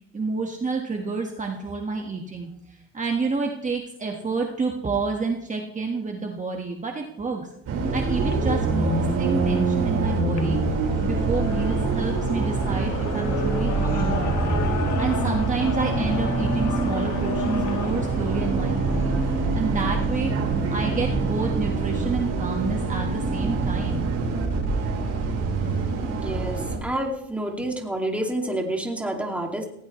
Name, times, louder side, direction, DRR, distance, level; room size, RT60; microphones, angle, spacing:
voice 1, 0.1-7.5 7.9-10.6 11.0-14.5 15.0-19.2 19.5-20.3 20.7-24.1, right 4 dB, 25° right, 1 dB, 1.6 m, -29 dB
Bus, 7.7-26.8, right 3 dB, 60° right, 4.7 m, -25 dB
sound 1, 8.2-19.6, left 8 dB, 75° left, 1.7 m, -36 dB
voice 2, 26.1-29.7, right 1 dB, 5° right, 1 dB, 2.4 m, -28 dB
19.0 x 16.0 x 3.2 m, 0.79 s
cardioid pair, 120°, 29 cm